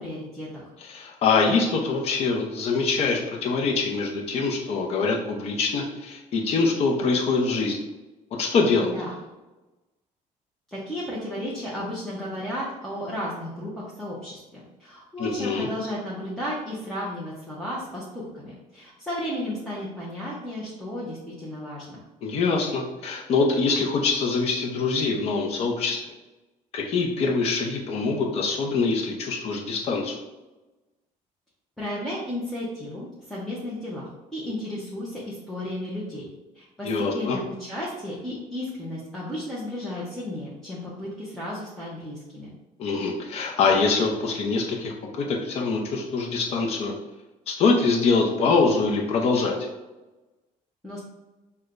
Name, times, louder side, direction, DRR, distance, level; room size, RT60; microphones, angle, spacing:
voice 1, 0.0-0.7 8.8-9.1 10.7-22.0 31.8-36.3 36.5-42.5 50.8-51.0, left 1 dB, 5° left, -8 dB, 0.7 m, -34 dB
voice 2, 0.9-7.8 8.4-8.9 15.2-15.7 22.2-26.0 26.7-30.2 36.8-37.4 42.8-46.9 47.5-49.6, left 4 dB, 45° left, 0 dB, 0.6 m, -24 dB
6.2 x 2.2 x 2.5 m, 1.1 s
cardioid pair, 165°, 14 cm